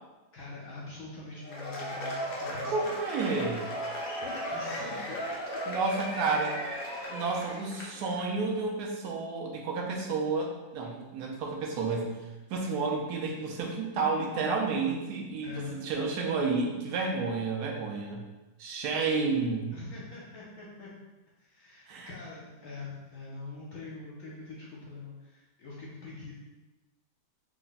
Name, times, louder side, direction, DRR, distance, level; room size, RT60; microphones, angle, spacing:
voice 1, 0.3-2.7 4.2-5.6 15.4-15.7 19.7-20.9 21.4-26.3, left 3 dB, 70° left, -7 dB, 1.2 m, -44 dB
Cheering / Applause / Crowd, 1.4-8.2, equal, 85° left, 0.5 m, -36 dB
voice 2, 2.7-3.7 5.7-6.6 7.1-12.2 12.5-18.2 18.6-19.7 21.9-22.1, right 4 dB, 75° right, 0 dB, 1.2 m, -31 dB
3.4 x 2.2 x 3.9 m, 1.1 s
omnidirectional pair, 1.8 m